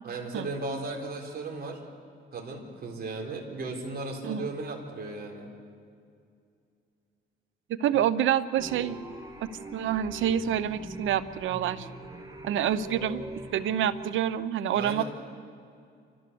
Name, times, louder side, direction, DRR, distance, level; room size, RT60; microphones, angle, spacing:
voice 1, 0.0-1.8 2.3-5.5 14.7-15.0, right 3 dB, 50° right, 1 dB, 4.1 m, -36 dB
voice 2, 7.7-9.0 9.4-11.9 12.4-13.2 13.5-15.0, right 10 dB, 80° right, 15 dB, 0.9 m, -27 dB
sound 1, 8.6-14.1, right 1 dB, 20° right, 2.5 m, -43 dB
29.5 x 14.0 x 7.0 m, 2.3 s
cardioid pair, 90°, 20 cm